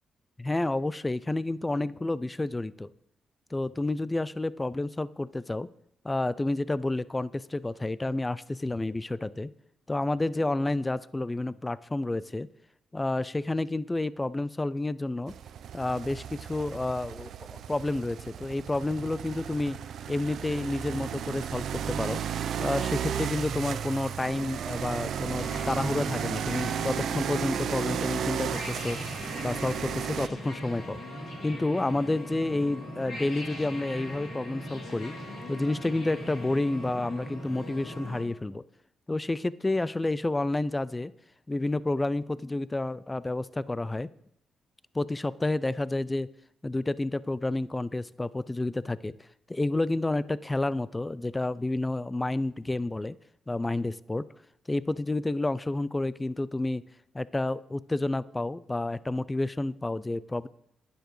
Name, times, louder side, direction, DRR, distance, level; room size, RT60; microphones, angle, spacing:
voice 1, 0.4-2.9 3.5-5.7 6.0-9.5 9.9-12.5 12.9-15.3 15.7-19.8 20.1-22.2 22.6-29.0 29.4-31.0 31.4-35.1 35.5-38.6 39.1-41.1 41.5-44.1 44.9-46.3 46.6-49.1 49.5-53.2 53.5-54.3 54.7-56.8 57.1-60.5, left 2 dB, 15° left, 18 dB, 0.3 m, -30 dB
sound 1, 15.3-30.3, right 8 dB, 75° right, 0.5 m, -34 dB
sound 2, 25.3-38.2, left 1 dB, 65° left, 3.3 m, -40 dB
11.5 x 10.0 x 3.1 m, 0.77 s
cardioid pair, 85°, 0 cm